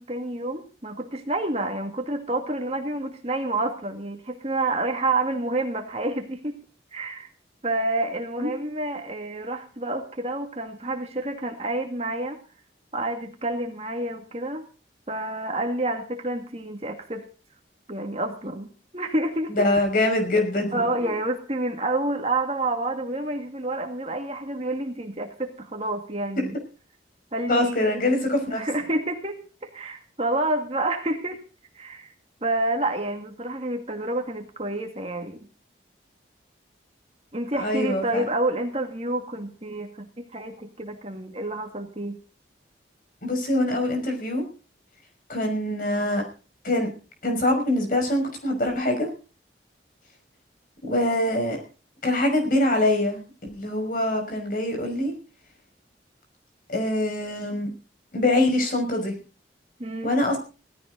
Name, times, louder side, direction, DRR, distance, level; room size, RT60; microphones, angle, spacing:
voice 1, 0.0-6.6 6.9-7.3 7.6-12.4 12.9-14.7 15.1-17.3 17.9-19.7 20.7-26.6 27.3-28.0 28.6-31.4 31.7-32.1 32.4-35.5 37.3-42.2 59.8-60.1, right 2 dB, 35° right, 5 dB, 2.1 m, -29 dB
voice 2, 19.5-21.1 27.5-28.7 37.6-38.2 43.2-44.4 45.3-46.2 46.6-46.9 47.2-49.1 50.8-51.6 52.0-53.2 53.5-55.1 56.7-57.7 58.1-59.1 60.0-60.4, left 1 dB, 45° left, 3 dB, 5.8 m, -24 dB
17.0 x 15.5 x 4.0 m, 0.36 s
head